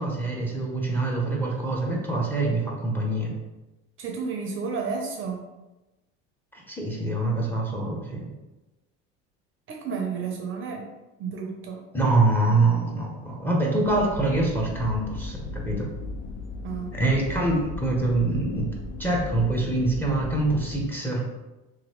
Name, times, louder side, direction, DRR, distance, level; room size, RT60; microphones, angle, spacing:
voice 1, 0.0-3.3 6.7-8.3 11.9-15.9 16.9-18.7 19.0-21.2, right 2 dB, 5° left, -2 dB, 0.7 m, -25 dB
voice 2, 4.0-5.4 9.7-10.9 11.2-11.8 16.6-17.0, right 5 dB, 40° right, 1 dB, 0.5 m, -31 dB
sound 1, 13.8-20.8, left 3 dB, 80° left, 0.5 m, -36 dB
3.0 x 2.5 x 2.9 m, 1.0 s
supercardioid pair, 95°, 32 cm